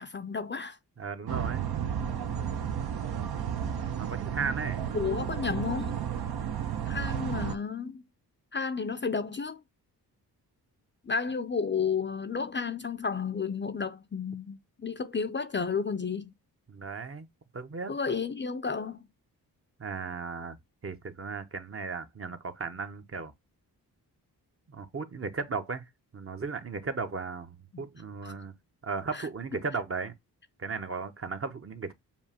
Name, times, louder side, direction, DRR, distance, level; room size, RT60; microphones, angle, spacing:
voice 1, 0.0-0.8 4.9-6.0 6.9-8.0 8.5-9.6 11.0-16.3 17.9-19.0 27.7-27.8 28.2-28.3 29.1-29.3, left 5 dB, 30° left, 0.6 m, -32 dB
voice 2, 1.0-1.7 4.0-4.8 16.7-17.3 17.5-17.9 19.8-20.6 20.8-23.3 24.7-25.8 26.1-28.5 28.8-30.1 30.6-31.9, right 4 dB, 35° right, 0.8 m, -36 dB
sound 1, 1.3-7.6, right 8 dB, 65° right, 0.9 m, -32 dB
7.1 x 2.4 x 2.8 m
cardioid pair, 55°, 40 cm